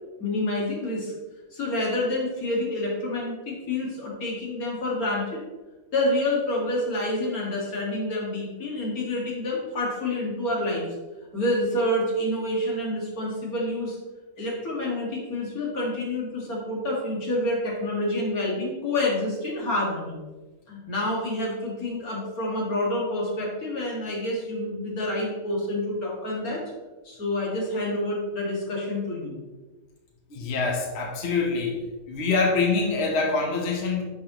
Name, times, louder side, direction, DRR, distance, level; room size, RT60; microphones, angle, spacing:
voice 1, 0.2-1.1 1.5-5.4 5.9-10.9 11.3-14.0 14.4-20.2 20.7-26.6 27.0-29.3, left 1 dB, 80° left, -3 dB, 2.4 m, -28 dB
voice 2, 30.3-34.0, left 4 dB, 50° left, 1 dB, 1.2 m, -25 dB
10.0 x 5.6 x 3.0 m, 1.2 s
omnidirectional pair, 1.5 m